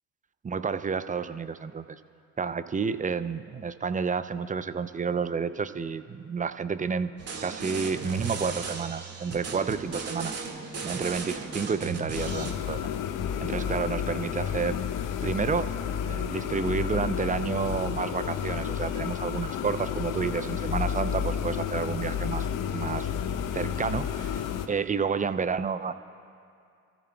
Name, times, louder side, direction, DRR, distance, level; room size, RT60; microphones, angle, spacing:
voice 1, 0.4-2.0 2.4-7.1 7.4-10.4 10.8-12.9 13.4-14.8 15.2-15.7 16.1-22.5 22.7-23.1 23.5-24.4 24.7-25.9, right 5 dB, 20° right, 12 dB, 0.6 m, -30 dB
sound 1, 7.2-12.5, right 4 dB, 40° right, 2.0 m, -36 dB
sound 2, 12.1-24.7, left 8 dB, 55° left, 1.0 m, -31 dB
29.5 x 14.0 x 2.3 m, 2.4 s
figure-of-eight pair, 50°, 38 cm